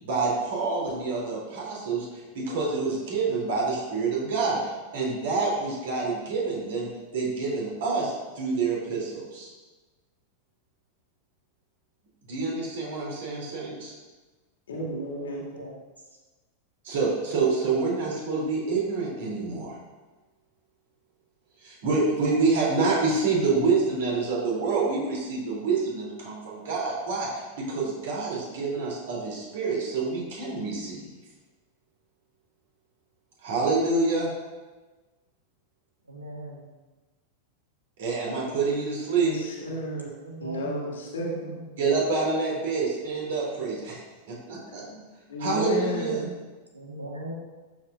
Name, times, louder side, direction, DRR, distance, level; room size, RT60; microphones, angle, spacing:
voice 1, 0.0-9.5 12.3-13.9 16.8-19.7 21.6-31.1 33.4-34.3 38.0-39.3 41.8-44.0 44.3-44.8 45.4-46.2, right 4 dB, 55° right, -3 dB, 3.1 m, -27 dB
voice 2, 14.7-15.4 39.2-40.1 40.4-41.5 44.7-45.0 45.3-46.3, equal, 65° left, -2 dB, 2.1 m, -32 dB
voice 3, 36.1-36.6 40.1-40.9 41.2-41.7 46.7-47.3, right 1 dB, 80° right, 0 dB, 1.4 m, -39 dB
13.0 x 7.3 x 2.5 m, 1.2 s
figure-of-eight pair, 90°, 0 cm